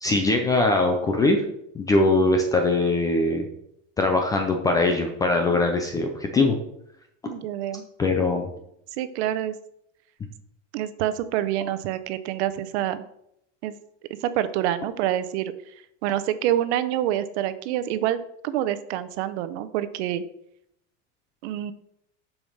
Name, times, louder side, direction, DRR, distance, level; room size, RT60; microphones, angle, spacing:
voice 1, 0.0-1.4 1.7-3.5 4.0-6.6 8.0-8.5, left 2 dB, 10° left, 4 dB, 0.3 m, -21 dB
voice 2, 7.3-7.8 9.0-9.6 10.7-13.0 13.6-13.7 14.2-15.5 16.0-20.2 21.4-21.7, right 12 dB, 60° right, 13 dB, 0.9 m, -27 dB
7.2 x 5.1 x 6.4 m, 0.75 s
supercardioid pair, 165°, 37 cm